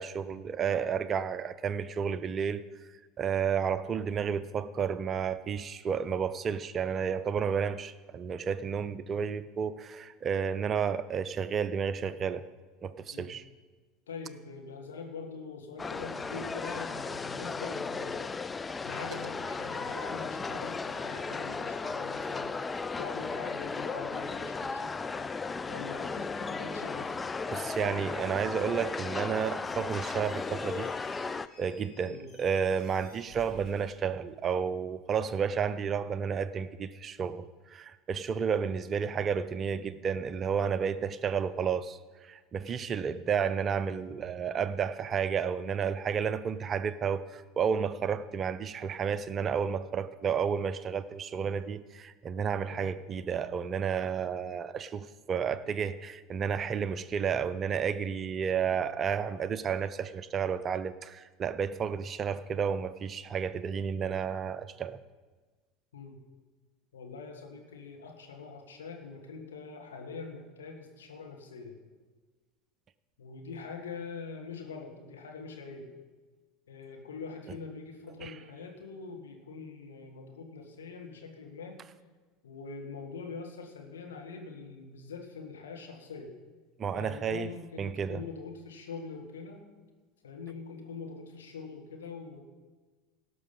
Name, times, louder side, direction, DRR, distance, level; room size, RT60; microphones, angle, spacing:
voice 1, 0.0-2.6 3.2-12.4 12.8-13.4 27.5-30.9 31.6-65.0 78.2-78.3 86.8-87.5 87.8-88.2, right 7 dB, 35° right, 15 dB, 0.5 m, -31 dB
voice 2, 14.1-22.6 23.0-25.3 25.7-27.2 32.0-32.3 52.7-52.9 65.9-66.2 66.9-71.8 73.2-75.9 76.7-81.8 82.4-86.3 86.9-89.6 90.2-92.4, left 4 dB, 75° left, 2 dB, 1.9 m, -43 dB
sound 1, 15.8-31.5, left 4 dB, 20° left, 0.4 m, -35 dB
Squeak, 30.1-34.8, left 1 dB, 40° left, 4.5 m, -55 dB
17.5 x 6.2 x 5.6 m, 1.4 s
figure-of-eight pair, 75°, 0 cm